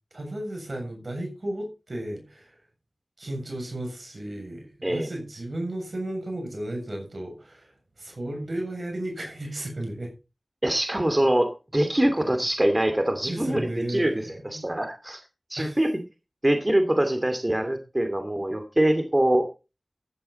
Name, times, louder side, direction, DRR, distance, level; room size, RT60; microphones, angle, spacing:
voice 1, 0.1-2.6 3.2-10.1 13.3-14.6 15.6-15.8, right 1 dB, 75° right, 3 dB, 7.4 m, -34 dB
voice 2, 10.6-15.2 15.5-15.9 16.4-19.5, right 1 dB, 30° right, 7 dB, 2.6 m, -24 dB
14.5 x 11.5 x 4.3 m, 0.30 s
wide cardioid pair, 45°, 0 cm